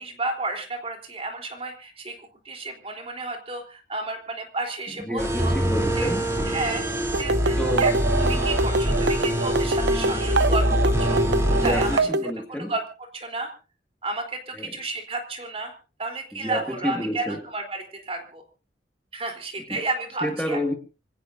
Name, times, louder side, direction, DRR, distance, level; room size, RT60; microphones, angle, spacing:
voice 1, 0.0-2.2 2.5-5.5 6.0-6.1 6.5-6.9 7.1-7.9 8.3-12.1 12.5-12.8 13.1-13.5 14.0-15.7 16.0-18.4 19.1-20.6, right 2 dB, 35° right, 3 dB, 3.7 m, -32 dB
voice 2, 5.0-6.3 7.6-8.0 11.5-12.7 14.5-14.7 16.3-17.4 19.7-19.8 20.2-20.7, equal, 5° left, 2 dB, 2.1 m, -29 dB
sound 1, 5.2-12.0, equal, 15° right, 3.3 m, -24 dB
sound 2, 7.1-12.3, right 2 dB, 70° right, 0.8 m, -25 dB
25.5 x 17.0 x 2.7 m, 0.35 s
head